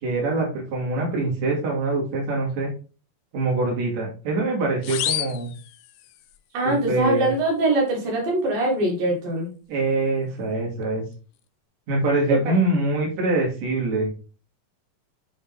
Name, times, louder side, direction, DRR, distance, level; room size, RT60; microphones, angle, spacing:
voice 1, 0.0-2.7 3.3-5.5 6.6-7.3 9.7-11.0 11.9-14.1, right 2 dB, 50° right, -2 dB, 3.5 m, -24 dB
sound 1, 4.8-6.4, left 13 dB, 80° left, 2.1 m, -30 dB
voice 2, 6.5-9.5 12.3-12.6, right 1 dB, 70° right, -2 dB, 3.9 m, -23 dB
10.0 x 3.6 x 3.5 m, 0.35 s
omnidirectional pair, 4.3 m